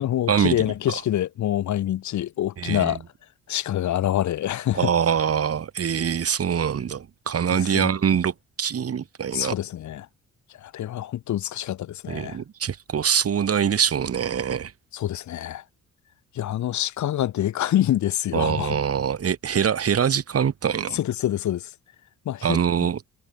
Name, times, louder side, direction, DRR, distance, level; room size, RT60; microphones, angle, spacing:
voice 1, 0.0-3.0 3.5-4.9 7.6-7.9 9.3-10.1 10.6-12.4 14.9-15.6 16.3-18.8 20.9-21.7 22.3-22.6, left 12 dB, 70° left, 1.9 m, -26 dB
voice 2, 2.6-3.0 4.7-8.3 8.6-9.6 12.1-14.7 18.3-21.0 22.4-23.0, right 8 dB, 50° right, 5.6 m, -24 dB
cardioid pair, 90°, 30 cm